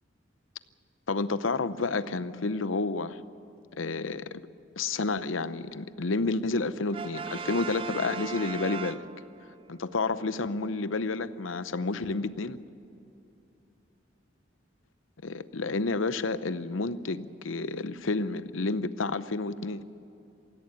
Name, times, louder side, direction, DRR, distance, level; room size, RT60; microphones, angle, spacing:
voice 1, 1.1-3.2 3.8-4.4 4.8-9.0 9.7-12.6 15.2-19.8, left 3 dB, 90° left, 14 dB, 0.8 m, -30 dB
Brass instrument, 6.9-9.6, right 5 dB, 25° right, 0.4 m, -37 dB
17.5 x 16.0 x 9.7 m, 2.8 s
head